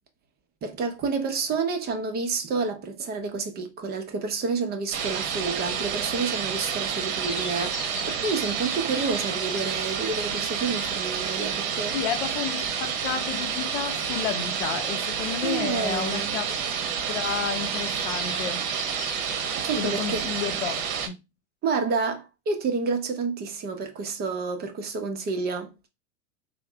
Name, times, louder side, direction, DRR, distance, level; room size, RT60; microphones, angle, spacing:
voice 1, 0.6-12.0 15.4-16.4 19.6-20.3 21.6-25.9, right 4 dB, 25° right, 0.7 m, -29 dB
sound 1, 4.9-21.1, right 7 dB, 60° right, 0.9 m, -29 dB
Bird vocalization bird call bird song, 7.2-20.2, left 2 dB, 10° left, 0.7 m, -41 dB
voice 2, 11.9-16.6 17.1-18.7 19.8-21.2, left 9 dB, 70° left, 0.6 m, -31 dB
3.4 x 2.1 x 3.3 m
hypercardioid pair, 120°, 36 cm